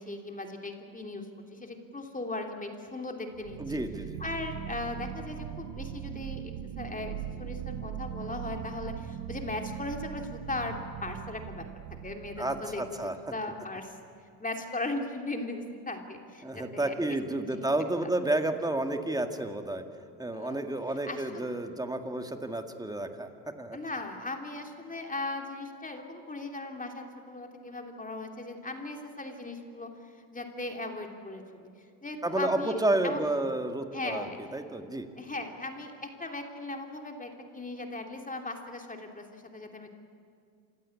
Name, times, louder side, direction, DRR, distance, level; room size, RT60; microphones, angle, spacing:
voice 1, 0.0-3.8 4.2-11.6 12.0-14.0 14.4-17.7 18.0-18.1 20.3-20.6 21.0-21.5 23.7-31.7 32.0-32.8 33.0-33.3 33.9-34.4 35.2-39.9, left 2 dB, 15° left, 3 dB, 2.9 m, -38 dB
sound 1, 3.3-13.1, right 10 dB, 70° right, 1.3 m, -40 dB
voice 2, 3.6-4.2 12.4-13.1 16.4-19.8 20.2-23.3 23.6-23.8 32.2-35.1, right 1 dB, 10° right, 6 dB, 2.1 m, -31 dB
27.0 x 16.5 x 8.6 m, 2.4 s
supercardioid pair, 80°, 46 cm